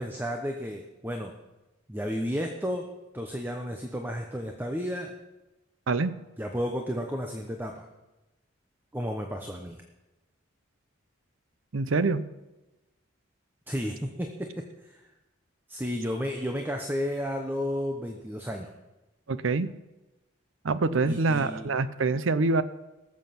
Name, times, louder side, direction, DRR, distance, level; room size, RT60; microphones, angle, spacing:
voice 1, 0.0-1.3 1.9-2.9 3.1-5.2 6.4-7.9 8.9-9.8 13.7-15.0 15.7-18.7 21.1-21.7, equal, 10° right, 3 dB, 0.9 m, -32 dB
voice 2, 11.7-12.2 19.3-19.7 20.6-22.6, right 3 dB, 75° right, 14 dB, 0.7 m, -25 dB
18.5 x 7.6 x 5.8 m, 1.0 s
head